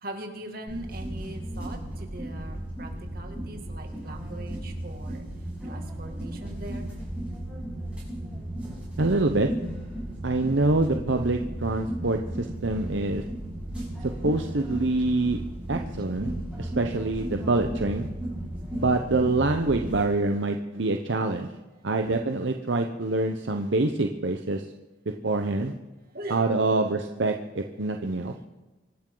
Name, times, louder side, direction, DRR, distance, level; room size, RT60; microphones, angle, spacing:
voice 1, 0.0-5.3 5.6-6.9 26.1-26.8, right 1 dB, 50° right, 3 dB, 2.3 m, -40 dB
sound 1, 0.7-20.0, right 1 dB, 5° right, 6.9 m, -35 dB
voice 2, 9.0-9.5 10.2-13.2 14.0-15.4 15.7-16.3 16.6-18.1 18.8-21.5 21.8-24.6 25.2-25.7 26.3-28.3, right 2 dB, 70° right, 4 dB, 0.9 m, -25 dB
24.5 x 12.0 x 3.9 m, 1.1 s
head